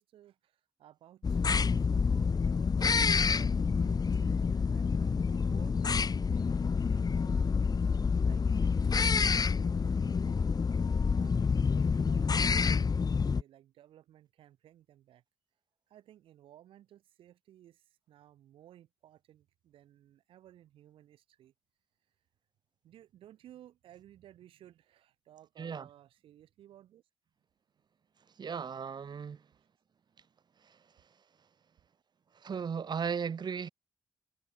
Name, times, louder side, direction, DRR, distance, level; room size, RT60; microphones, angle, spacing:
voice 1, 0.0-4.0 4.7-6.6 6.8-7.8 8.2-10.5 11.0-11.6 12.0-15.2 15.9-21.5 22.8-27.0 29.6-29.7, right 12 dB, 80° right, 6.1 m, -58 dB
sound 1, 1.2-13.4, left 5 dB, 45° left, 1.1 m, -28 dB
voice 2, 28.4-29.4 30.6-30.8 32.3-33.7, right 6 dB, 55° right, 1.1 m, -36 dB
supercardioid pair, 45°, 9 cm